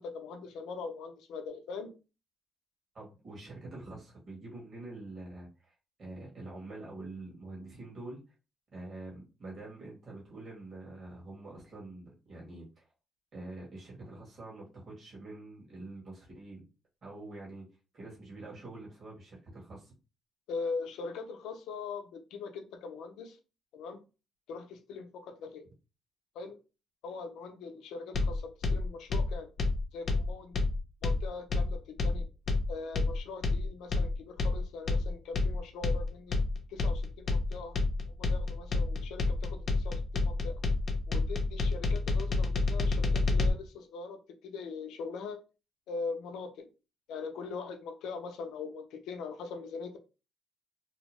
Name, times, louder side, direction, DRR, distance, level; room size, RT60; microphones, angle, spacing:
voice 1, 0.0-1.9 20.5-23.4 23.7-24.0 24.5-25.7 26.3-26.6 27.0-29.5 29.9-30.6 31.0-32.3 32.7-36.4 36.7-37.8 38.2-40.5 41.1-45.4 45.9-46.7 47.1-50.0, left 4 dB, 90° left, 0.5 m, -41 dB
voice 2, 2.9-8.2 8.7-12.8 13.3-16.6 17.0-17.6 17.9-19.9, right 2 dB, 45° right, 1.4 m, -46 dB
sound 1, 28.1-43.5, left 3 dB, 50° left, 0.6 m, -29 dB
2.7 x 2.0 x 3.0 m
cardioid pair, 90°, 0 cm